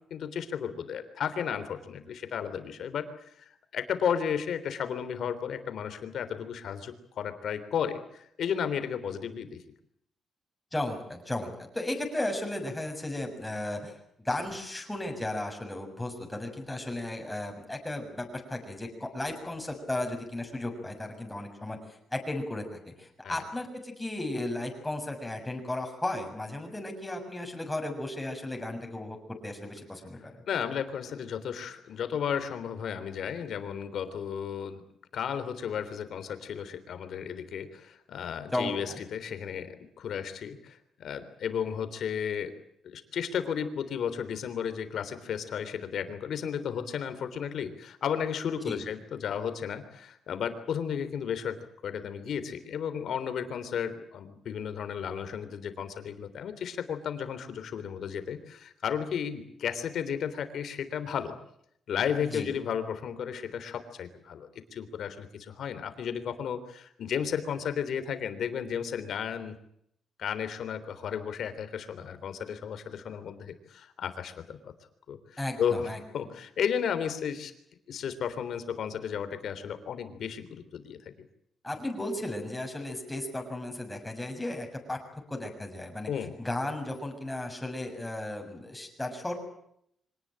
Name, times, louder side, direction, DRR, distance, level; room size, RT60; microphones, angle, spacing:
voice 1, 0.1-3.1 3.7-9.6 23.2-23.4 30.5-34.8 35.1-42.5 42.8-51.6 51.8-61.4 61.9-69.5 70.2-74.7 75.1-77.5 77.9-81.1 86.1-86.3, left 8 dB, 70° left, 10 dB, 3.5 m, -33 dB
voice 2, 10.7-13.9 14.2-21.8 22.1-30.3 38.5-39.0 48.7-48.8 62.3-62.5 75.4-76.0 81.6-86.1 86.4-89.3, left 1 dB, 10° left, 3 dB, 6.8 m, -35 dB
25.0 x 19.0 x 8.8 m, 0.72 s
cardioid pair, 125°, 0 cm